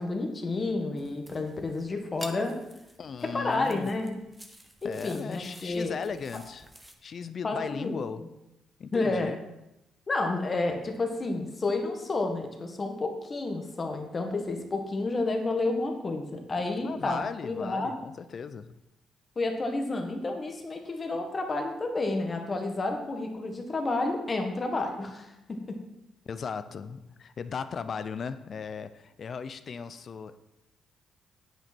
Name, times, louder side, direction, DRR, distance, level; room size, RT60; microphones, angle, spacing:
voice 1, 0.0-2.6 3.3-4.1 4.8-6.0 7.4-7.9 8.9-9.3 10.1-17.9 19.3-25.8, left 2 dB, 35° left, 3 dB, 1.7 m, -30 dB
sound 1, 1.0-6.9, right 1 dB, 5° right, 1.2 m, -50 dB
voice 2, 3.0-3.9 4.8-6.7 7.0-8.2 8.8-9.4 16.8-18.8 26.3-30.4, left 6 dB, 50° left, 12 dB, 0.6 m, -37 dB
9.2 x 8.0 x 4.4 m, 0.89 s
cardioid pair, 90°, 0 cm